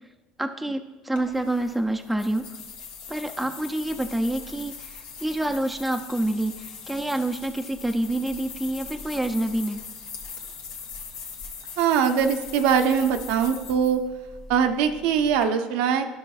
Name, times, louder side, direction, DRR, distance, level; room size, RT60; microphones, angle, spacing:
voice 1, 0.4-2.5 3.1-4.9 5.2-9.8, right 1 dB, 5° right, 4 dB, 0.4 m, -27 dB
sound 1, 1.2-15.4, left 5 dB, 60° left, 1.6 m, -41 dB
voice 2, 11.8-14.0 14.5-16.1, right 7 dB, 80° right, 6 dB, 0.6 m, -22 dB
12.5 x 6.2 x 2.4 m, 1.1 s
cardioid pair, 140°, 2 cm